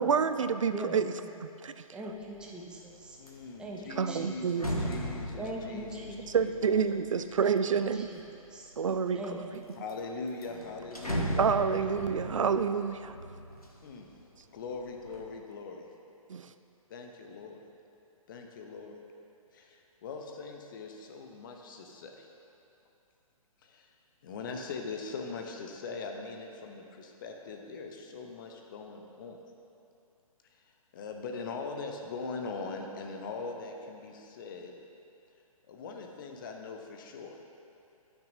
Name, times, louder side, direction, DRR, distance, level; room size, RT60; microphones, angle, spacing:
voice 1, 0.0-1.1 1.4-1.8 3.9-4.7 6.3-8.1 8.8-9.6 11.4-13.1 16.3-16.5, right 6 dB, 60° right, 10 dB, 0.4 m, -28 dB
voice 2, 1.9-3.2 3.6-3.8 4.1-4.6 5.4-6.2 7.4-7.6 7.9-8.2 8.5-8.7 9.1-9.6, right 1 dB, 5° right, -2 dB, 0.5 m, -41 dB
sound 1, 2.2-2.5 2.9-8.3 8.9-9.6 9.9-10.0 10.3-14.2 14.6-15.2, equal, 90° left, 1.1 m, -38 dB
voice 3, 3.2-6.1 6.4-6.8 9.7-11.4 13.8-14.1 14.5-15.9 16.9-17.6 18.3-19.0 19.5-22.3 23.6-23.9 24.2-29.4 30.5-30.6 30.9-34.7 35.7-37.4, left 4 dB, 35° left, 2 dB, 0.8 m, -41 dB
13.0 x 6.2 x 2.7 m, 2.7 s
figure-of-eight pair, 125°, 18 cm